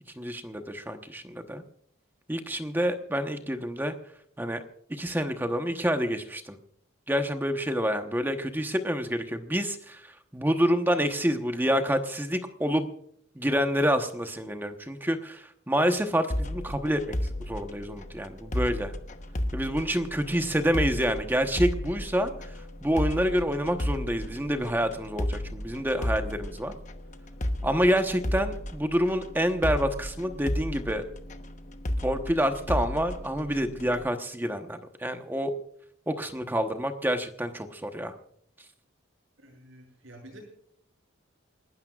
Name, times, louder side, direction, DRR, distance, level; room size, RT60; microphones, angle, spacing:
voice 1, 0.2-1.6 2.3-3.9 4.4-4.6 4.9-6.6 7.1-12.9 13.3-18.9 19.5-22.5 22.8-26.7 27.6-31.1 32.0-35.5 36.1-38.1, equal, 10° right, 7 dB, 1.0 m, -28 dB
sound 1, 16.3-34.0, left 1 dB, 35° left, 1.0 m, -33 dB
voice 2, 20.3-20.8 39.4-40.4, right 1 dB, 75° right, 1 dB, 6.7 m, -49 dB
29.0 x 12.5 x 2.4 m, 0.68 s
head